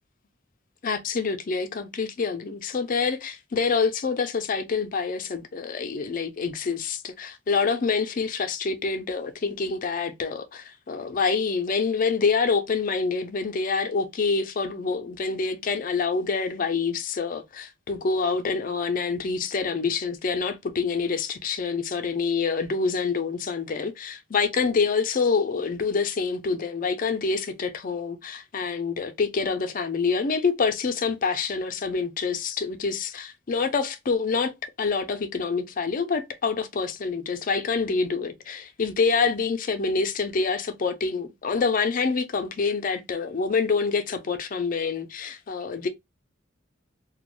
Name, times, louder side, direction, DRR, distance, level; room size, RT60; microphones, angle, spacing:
voice 1, 0.8-34.5 34.8-45.9, left 4 dB, 45° left, 0.4 m, -26 dB
2.3 x 2.1 x 3.0 m
head